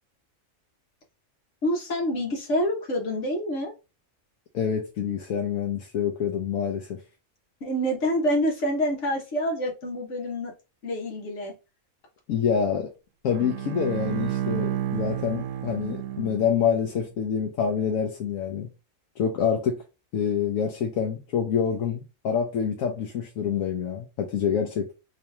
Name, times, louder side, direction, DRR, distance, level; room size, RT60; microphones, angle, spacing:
voice 1, 1.6-3.7 7.6-10.5 10.8-11.5, equal, 65° left, 1.5 m, -27 dB
voice 2, 4.5-7.0 12.3-12.9 13.2-18.7 19.2-19.8 20.1-24.9, left 7 dB, 85° left, 1.1 m, -26 dB
Bowed string instrument, 13.3-16.8, right 11 dB, 75° right, 0.9 m, -31 dB
3.1 x 2.9 x 3.4 m
omnidirectional pair, 1.4 m